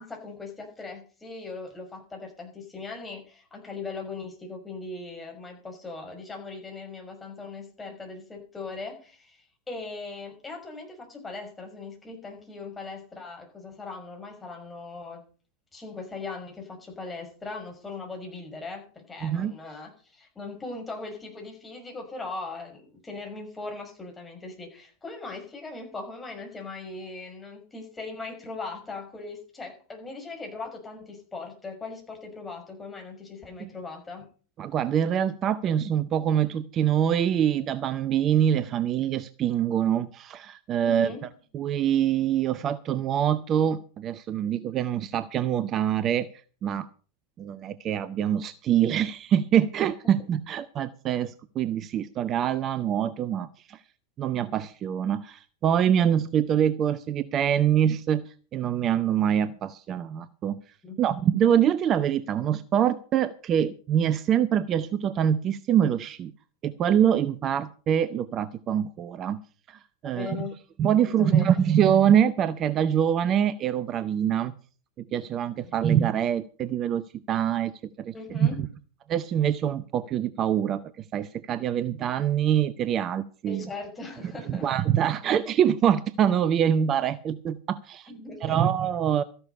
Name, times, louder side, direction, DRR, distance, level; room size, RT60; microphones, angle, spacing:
voice 1, 0.0-15.2 15.7-34.3 40.8-41.2 60.8-61.0 70.0-70.6 71.0-71.6 75.6-75.7 78.1-78.6 83.5-84.7 88.1-88.6, left 3 dB, 10° left, 1 dB, 5.7 m, -39 dB
voice 2, 19.2-19.5 33.6-33.7 34.6-41.1 41.5-46.3 46.6-46.9 47.4-53.8 54.2-60.6 61.0-66.3 66.6-69.4 69.7-70.4 70.8-74.5 75.1-77.7 78.0-78.5 79.1-80.8 81.1-83.7 84.5-88.1 88.4-89.2, right 9 dB, 30° right, 16 dB, 0.6 m, -25 dB
14.0 x 11.5 x 5.4 m, 0.39 s
figure-of-eight pair, 90°, 0 cm